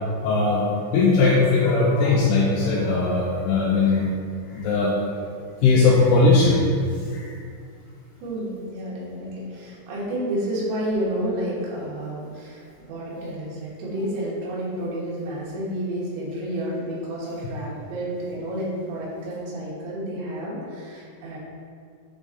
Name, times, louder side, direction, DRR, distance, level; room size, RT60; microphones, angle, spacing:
voice 1, 0.2-4.1 4.5-4.9 5.6-6.7 7.1-7.3, left 3 dB, 85° left, -4 dB, 2.4 m, -19 dB
voice 2, 8.2-21.4, right 1 dB, 80° right, -6 dB, 3.8 m, -30 dB
8.3 x 3.6 x 3.8 m, 2.3 s
omnidirectional pair, 5.3 m